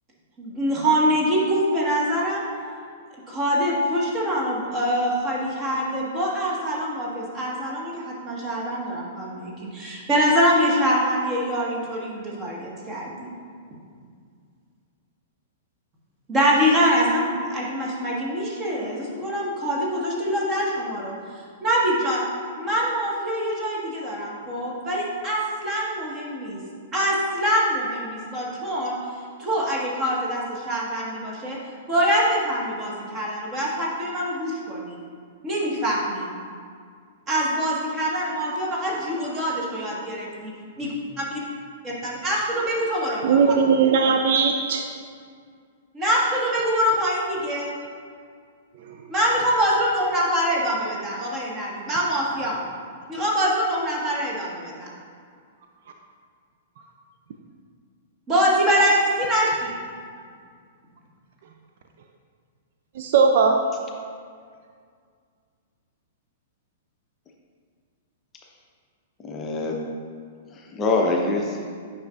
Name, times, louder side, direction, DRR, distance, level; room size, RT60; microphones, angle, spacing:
voice 1, 0.4-2.5 3.3-13.3 16.3-21.1 21.6-22.3 22.6-26.6 26.9-29.0 29.4-31.6 31.9-35.0 35.4-36.3 37.3-40.5 40.8-40.9 42.0-43.4 45.9-47.7 49.1-52.6 53.1-54.9 58.3-59.8, equal, 20° right, -4 dB, 1.5 m, -24 dB
voice 2, 43.2-44.8 63.0-63.6, right 5 dB, 50° right, 3 dB, 0.4 m, -18 dB
voice 3, 69.2-69.8 70.5-71.7, left 3 dB, 20° left, 0 dB, 0.7 m, -24 dB
9.2 x 5.4 x 2.5 m, 2.1 s
figure-of-eight pair, 105°, 0 cm